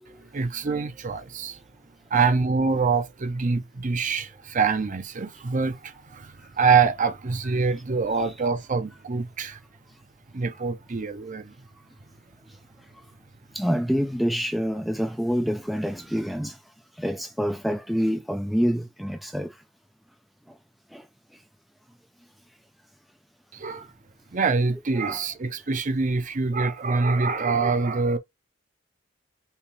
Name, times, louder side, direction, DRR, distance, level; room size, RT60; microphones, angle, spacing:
voice 1, 0.2-1.6 2.1-9.6 10.3-11.5 23.5-23.9 24.3-28.2, right 4 dB, 40° right, 0.7 m, -25 dB
voice 2, 13.5-16.6 17.0-19.5 20.9-21.0 25.0-25.2, equal, ahead, 0.4 m, -27 dB
5.5 x 2.4 x 3.3 m
head